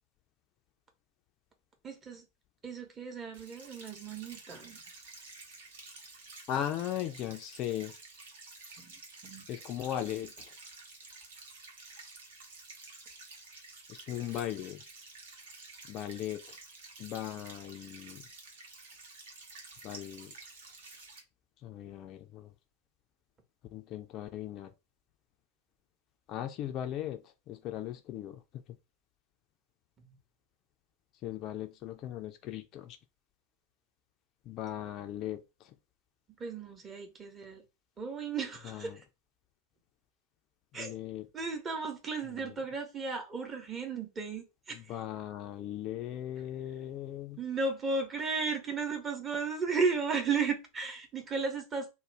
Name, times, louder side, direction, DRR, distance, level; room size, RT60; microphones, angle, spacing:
voice 1, 1.8-2.2 2.6-4.8 8.8-8.9 9.2-9.4 36.4-37.6 38.0-39.0 40.7-40.9 41.3-45.0 47.4-51.9, right 4 dB, 20° right, 0.8 m, -34 dB
sound 1, 3.3-21.2, right 3 dB, 60° right, 0.8 m, -51 dB
voice 2, 6.5-7.9 9.5-10.3 13.9-14.8 15.9-16.6 17.0-18.2 19.8-20.3 21.6-22.5 23.7-24.7 26.3-27.2 27.5-28.4 31.2-33.0 34.5-35.4 38.6-39.0 40.7-41.3 42.4-42.5 44.7-47.4, left 11 dB, 35° left, 0.4 m, -38 dB
2.4 x 2.1 x 3.1 m
figure-of-eight pair, 90°, 0 cm